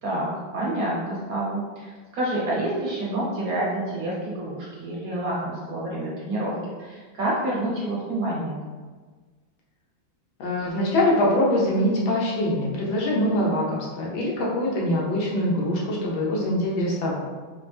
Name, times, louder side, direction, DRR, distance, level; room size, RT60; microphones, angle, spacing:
voice 1, 0.0-8.6, right 1 dB, 60° right, -5 dB, 1.0 m, -28 dB
voice 2, 10.4-17.2, left 1 dB, 85° left, -4 dB, 1.7 m, -23 dB
4.6 x 2.1 x 3.3 m, 1.4 s
omnidirectional pair, 2.1 m